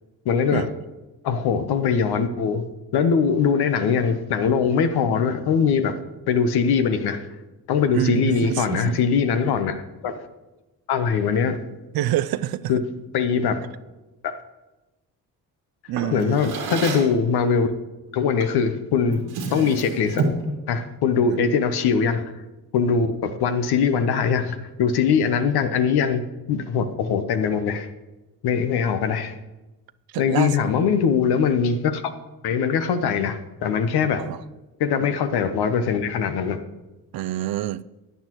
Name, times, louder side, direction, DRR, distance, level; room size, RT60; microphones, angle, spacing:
voice 1, 0.2-0.7 1.2-2.6 2.9-5.9 6.3-7.2 7.7-9.8 10.0-10.3 10.9-11.6 12.7-12.8 13.1-13.6 14.2-14.3 16.1-17.7 18.1-19.2 19.5-20.2 20.7-22.2 22.7-26.2 26.5-27.9 28.4-29.3 30.2-32.0 32.4-34.3 34.8-36.6, left 6 dB, 80° left, 1.0 m, -21 dB
voice 2, 7.9-9.0 11.9-12.7 15.9-16.4 21.3-21.4 30.1-30.6 34.2-34.4 35.0-35.1 37.1-37.8, right 13 dB, 70° right, 0.5 m, -26 dB
Drawer open or close, 15.9-17.2 18.4-18.6 19.0-20.5, right 3 dB, 90° right, 1.9 m, -29 dB
13.5 x 9.2 x 3.0 m
supercardioid pair, 55°, 38 cm